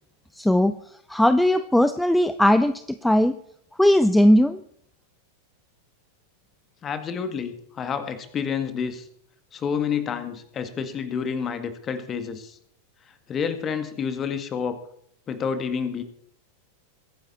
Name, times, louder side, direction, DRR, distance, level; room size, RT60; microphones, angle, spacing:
voice 1, 0.4-0.7 1.1-3.3 3.8-4.6, left 1 dB, 5° left, 12 dB, 0.6 m, -18 dB
voice 2, 6.8-9.0 9.5-12.6 13.3-14.8 15.3-16.0, left 6 dB, 25° left, 10 dB, 1.8 m, -29 dB
22.5 x 9.8 x 4.2 m, 0.68 s
figure-of-eight pair, 90°, 0 cm